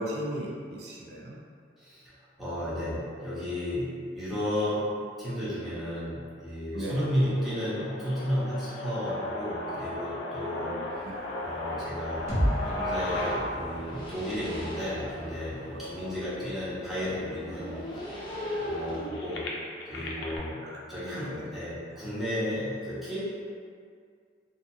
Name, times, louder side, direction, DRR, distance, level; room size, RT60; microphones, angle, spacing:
voice 1, 0.0-1.4 6.7-7.0 11.0-11.2 15.7-16.5 20.6-20.8 21.1-21.4, right 1 dB, 65° right, -3 dB, 0.5 m, -37 dB
voice 2, 1.8-11.1 11.4-12.3 12.6-17.8 18.6-19.5 19.9-23.2, equal, ahead, -13 dB, 0.8 m, -33 dB
sound 1, 6.9-16.9 17.6-17.7 17.9-20.4, left 1 dB, 85° left, 0.4 m, -37 dB
sound 2, 10.9-19.1, left 1 dB, 25° left, 0.5 m, -40 dB
sound 3, 12.3-16.2, equal, 40° right, 1.2 m, -34 dB
2.6 x 2.5 x 2.7 m, 2.1 s
head